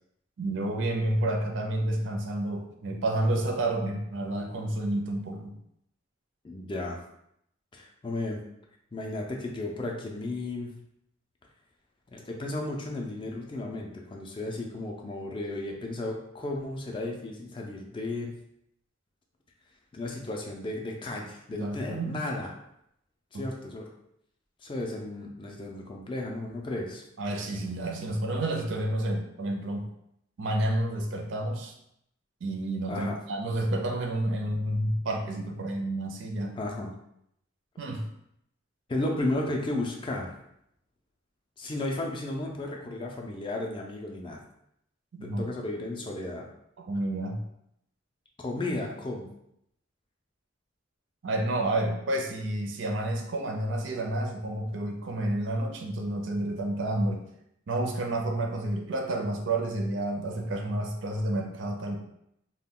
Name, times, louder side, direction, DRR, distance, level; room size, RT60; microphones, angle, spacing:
voice 1, 0.4-5.5 21.5-22.2 23.3-23.4 27.2-29.9 30.4-31.7 32.4-36.6 37.8-38.1 45.1-45.5 46.9-47.4 51.2-57.2 57.7-62.0, right 1 dB, 70° right, 3 dB, 0.5 m, -30 dB
voice 2, 6.4-7.0 7.7-8.4 8.9-10.7 12.1-18.3 19.9-22.5 23.3-23.8 24.6-27.0 32.9-33.2 36.6-36.9 38.9-40.4 41.6-44.4 45.2-46.4 48.4-49.3, left 2 dB, 25° left, 0 dB, 0.3 m, -34 dB
2.2 x 2.1 x 3.6 m, 0.77 s
head